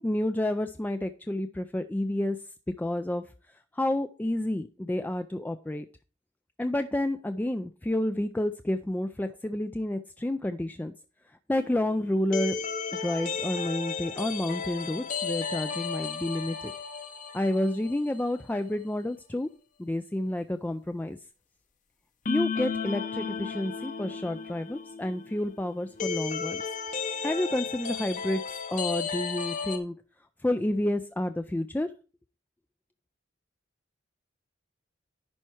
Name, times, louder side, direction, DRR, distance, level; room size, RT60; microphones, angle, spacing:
voice 1, 0.0-2.4 2.8-3.2 3.7-5.9 6.6-10.9 11.5-12.6 13.0-16.7 17.3-19.5 19.8-21.2 22.3-26.6 27.2-30.0 30.4-31.9, left 1 dB, 10° left, 9 dB, 0.3 m, -30 dB
sound 1, 11.5-18.2 18.5-18.6 22.2-29.8, left 5 dB, 45° left, 1.0 m, -34 dB
10.5 x 4.5 x 4.4 m, 0.34 s
head